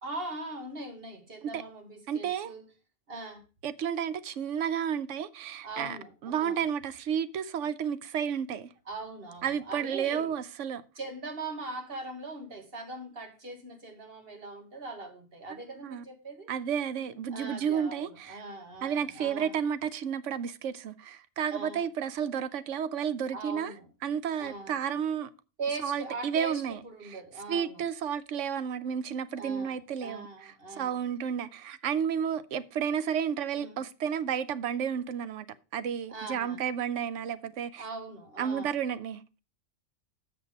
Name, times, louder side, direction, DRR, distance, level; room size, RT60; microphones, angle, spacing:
voice 1, 0.0-2.6 3.1-3.4 5.6-6.6 8.8-10.3 10.9-16.5 17.3-19.5 21.5-21.8 23.3-23.9 24.4-24.7 25.6-27.8 29.4-31.0 33.5-33.8 36.1-36.6 37.8-38.7, right 3 dB, 50° right, 1.8 m, -41 dB
voice 2, 2.1-2.5 3.6-6.0 6.2-8.7 9.4-10.8 15.8-16.0 16.5-18.4 18.8-23.7 24.0-25.3 25.8-27.2 27.5-35.5 35.7-37.8 38.4-39.4, right 8 dB, 85° right, 1.0 m, -32 dB
7.5 x 6.0 x 5.2 m
omnidirectional pair, 1.2 m